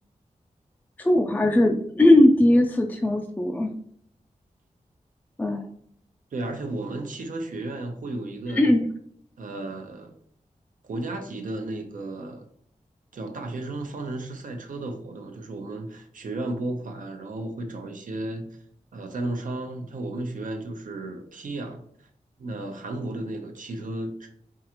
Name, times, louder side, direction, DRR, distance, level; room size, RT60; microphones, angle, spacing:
voice 1, 1.0-3.7 5.4-5.7 8.5-8.8, left 1 dB, 15° left, 3 dB, 0.3 m, -19 dB
voice 2, 6.3-8.7 9.4-10.1 10.8-12.4 13.1-18.6 18.9-21.8 22.4-24.4, right 2 dB, 85° right, 4 dB, 0.7 m, -34 dB
4.6 x 2.4 x 2.9 m, 0.64 s
wide cardioid pair, 95°, 13 cm